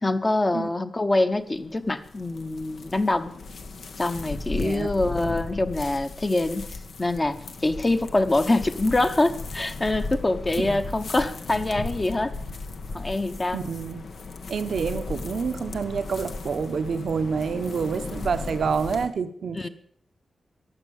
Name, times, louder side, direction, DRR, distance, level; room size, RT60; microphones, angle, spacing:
voice 1, 0.0-3.3 4.0-6.7 7.0-7.4 7.6-12.3 12.9-13.6 19.5-19.7, left 2 dB, 25° left, 8 dB, 1.0 m, -24 dB
sound 1, 1.3-19.1, left 3 dB, 75° left, 1.5 m, -36 dB
voice 2, 4.5-4.9 10.6-10.8 13.5-14.0 14.5-19.7, right 5 dB, 75° right, 9 dB, 1.0 m, -28 dB
15.0 x 11.0 x 7.1 m, 0.64 s
wide cardioid pair, 125°, 0 cm